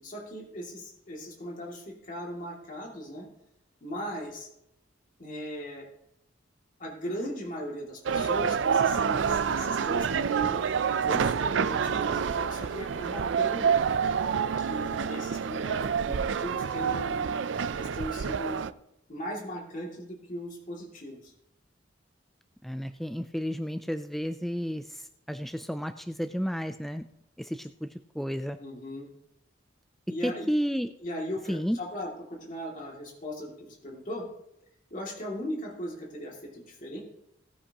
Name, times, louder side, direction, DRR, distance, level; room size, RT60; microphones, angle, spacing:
voice 1, 0.0-3.3 3.8-4.5 5.2-5.9 6.8-10.6 11.1-13.8 14.6-17.2 17.7-18.6 19.1-21.3 28.6-29.1 30.1-30.5 31.0-34.2 34.9-37.0, equal, 45° left, -2 dB, 2.5 m, -38 dB
sound 1, 8.1-18.7, right 6 dB, 80° right, 0.5 m, -27 dB
voice 2, 22.6-27.0 27.4-27.9 28.1-28.6 30.2-30.9 31.5-31.8, equal, ahead, 9 dB, 0.3 m, -32 dB
17.5 x 9.8 x 2.9 m, 0.81 s
head